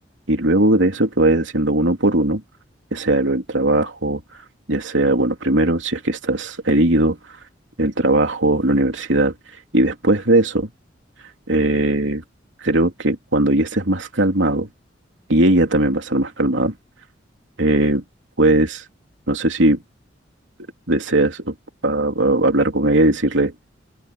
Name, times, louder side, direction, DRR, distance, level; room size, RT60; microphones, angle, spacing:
voice 1, 0.3-2.4 2.9-4.2 4.7-7.2 7.8-9.3 9.7-10.7 11.5-12.2 12.6-14.7 15.3-16.7 17.6-18.0 18.4-18.8 19.3-19.8 20.9-21.5 21.8-23.5, right 1 dB, 85° right, 3.2 m, -18 dB
open air
head